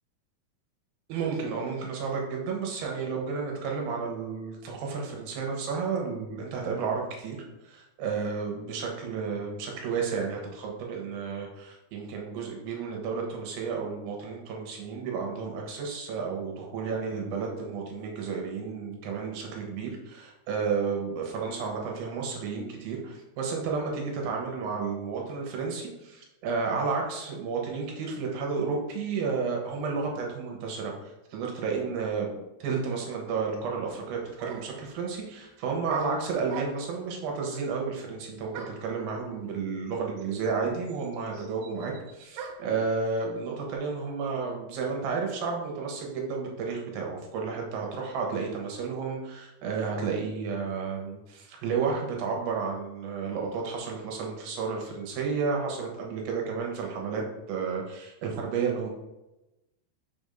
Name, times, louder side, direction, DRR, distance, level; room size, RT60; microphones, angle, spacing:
voice 1, 1.1-7.4 7.6-32.3 32.6-58.9, right 5 dB, 70° right, 0 dB, 2.7 m, -32 dB
sound 1, 33.9-34.0 34.4-34.9 35.9-37.0 38.5-38.9 39.9-40.0 40.2-42.8, right 6 dB, 85° right, 2.7 m, -42 dB
6.0 x 3.5 x 5.2 m, 0.98 s
omnidirectional pair, 4.8 m